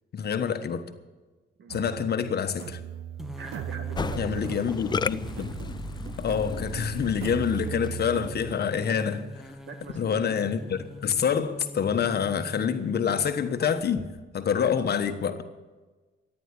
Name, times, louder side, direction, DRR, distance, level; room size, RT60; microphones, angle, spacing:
voice 1, 0.1-0.8 1.7-2.8 4.2-5.5 6.2-9.2 9.9-14.0 14.3-15.4, left 7 dB, 55° left, 8 dB, 1.3 m, -27 dB
sound 1, 1.7-8.6, right 11 dB, 90° right, 0.6 m, -38 dB
sound 2, 3.2-14.1, left 1 dB, ahead, 1.5 m, -42 dB
voice 2, 3.4-4.6 9.6-10.2, right 4 dB, 65° right, 7 dB, 2.1 m, -43 dB
Musical instrument, 4.0-8.2, left 5 dB, 20° left, 0.4 m, -35 dB
14.5 x 10.0 x 8.5 m, 1.3 s
cardioid pair, 90°, 20 cm